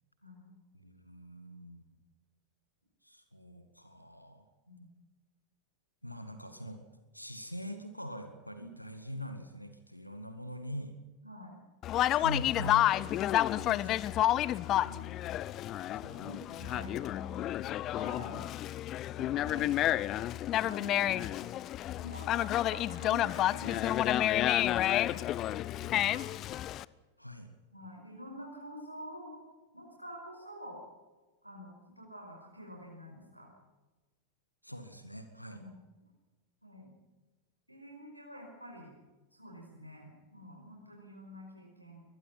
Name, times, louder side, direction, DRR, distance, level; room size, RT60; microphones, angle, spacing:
voice 1, 0.2-0.5 4.7-4.9 8.6-8.7 11.2-11.6 15.7-15.9 16.2-17.4 17.9-18.4 19.1-19.8 20.6-21.6 22.0-26.3 27.7-29.4 29.7-30.8 31.4-33.5 35.5-35.8 36.6-36.9 37.7-38.9 39.3-42.0, equal, 90° right, -1 dB, 5.2 m, -48 dB
voice 2, 0.7-1.8 3.0-4.5 6.0-6.8 7.1-11.0 12.2-12.9 13.6-14.1 14.7-15.2 16.0-16.3 16.7-17.0 27.2-27.5 34.6-35.6, equal, 90° left, 8 dB, 2.0 m, -43 dB
Conversation, 11.8-26.8, left 13 dB, 35° left, 0.6 m, -30 dB
23.0 x 21.0 x 5.9 m, 1.2 s
figure-of-eight pair, 90°, 0 cm